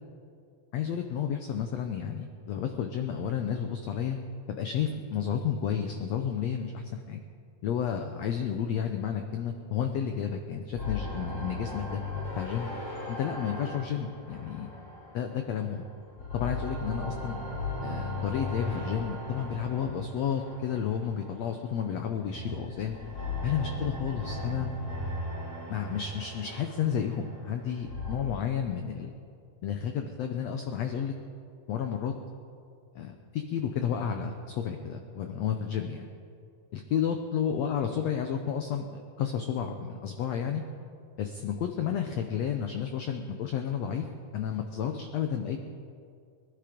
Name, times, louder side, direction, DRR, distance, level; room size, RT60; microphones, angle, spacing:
voice 1, 0.7-4.2 4.5-7.2 7.6-12.0 12.4-12.7 13.1-14.7 15.1-15.8 16.3-17.4 17.8-23.0 23.4-24.7 25.7-29.1 29.6-31.1 31.7-32.1 32.9-36.1 36.7-38.9 39.2-40.6 41.2-44.1 44.3-45.6, left 8 dB, 80° left, 5 dB, 1.5 m, -31 dB
sound 1, 10.8-15.7 16.1-21.4 22.2-28.2, left 2 dB, 25° left, 4.1 m, -37 dB
20.5 x 11.5 x 5.1 m, 2.4 s
omnidirectional pair, 4.0 m